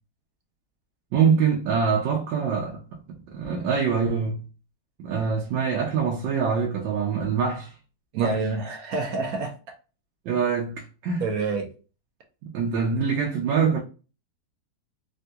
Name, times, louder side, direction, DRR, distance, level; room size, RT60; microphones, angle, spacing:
voice 1, 1.1-4.4 5.0-7.7 8.2-8.4 10.2-11.3 12.5-13.8, right 6 dB, 85° right, 1.3 m, -24 dB
voice 2, 8.1-9.5 11.2-11.7, right 4 dB, 65° right, 0.9 m, -27 dB
3.4 x 2.2 x 2.7 m
omnidirectional pair, 2.0 m